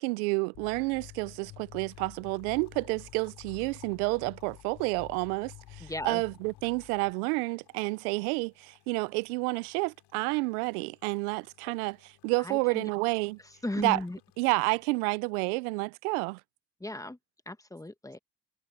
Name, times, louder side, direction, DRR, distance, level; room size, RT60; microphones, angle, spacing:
voice 1, 0.0-13.4 13.8-14.0 14.4-16.4, right 27 dB, 80° right, 0.7 m, -30 dB
sound 1, 0.5-7.1, left 16 dB, 45° left, 0.8 m, -50 dB
sound 2, 1.9-14.9, left 15 dB, 65° left, 4.3 m, -64 dB
voice 2, 5.8-6.2 12.4-12.9 13.6-14.2 16.8-17.2 17.5-18.2, left 1 dB, 10° left, 1.6 m, -36 dB
hypercardioid pair, 75°, 44 cm